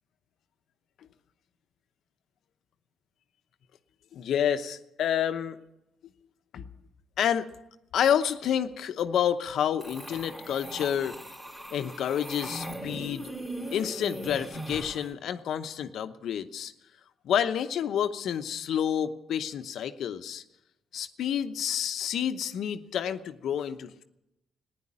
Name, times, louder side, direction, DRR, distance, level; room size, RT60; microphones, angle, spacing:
voice 1, 4.1-5.6 6.5-6.7 7.2-7.5 7.9-11.2 11.7-13.3 13.7-16.7 17.2-20.4 20.9-24.0, left 9 dB, 70° left, 10 dB, 0.8 m, -29 dB
sound 1, 9.8-15.1, right 1 dB, 15° right, 3.3 m, -39 dB
15.0 x 10.5 x 8.7 m, 0.91 s
cardioid pair, 90°, 0 cm